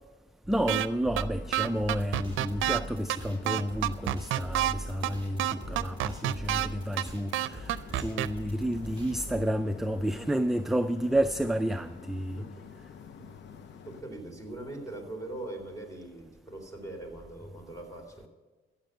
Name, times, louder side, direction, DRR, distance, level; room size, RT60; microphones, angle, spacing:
voice 1, 0.5-12.5, right 1 dB, ahead, 0.4 m, -30 dB
sound 1, 0.7-0.9 1.2-1.3 1.5-2.8 3.1-3.2 3.5-4.7 5.0-5.1 5.4-6.7 7.0-7.1 7.3-8.3, right 14 dB, 80° right, 0.5 m, -28 dB
sound 2, 1.3-14.0, left 8 dB, 65° left, 0.7 m, -49 dB
sound 3, 1.8-9.4, right 1 dB, 20° right, 4.7 m, -42 dB
voice 2, 12.4-12.7 13.2-13.3 13.8-18.3, right 2 dB, 15° left, 3.8 m, -41 dB
15.0 x 7.3 x 7.7 m
cardioid pair, 90°, 20 cm